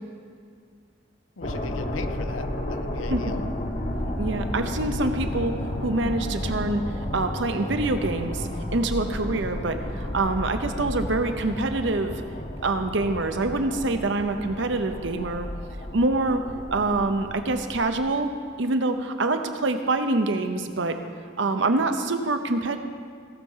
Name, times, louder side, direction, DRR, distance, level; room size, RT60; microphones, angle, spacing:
voice 1, 1.4-3.4, left 4 dB, 85° left, 11 dB, 0.6 m, -38 dB
sound 1, 1.4-18.1, left 1 dB, 40° left, 1.0 m, -32 dB
voice 2, 4.2-6.8 7.1-12.2 12.6-15.5 15.9-16.4 16.7-18.3 18.6-21.0 21.4-22.8, right 2 dB, 65° right, 7 dB, 0.8 m, -25 dB
17.5 x 6.7 x 5.6 m, 2.1 s
head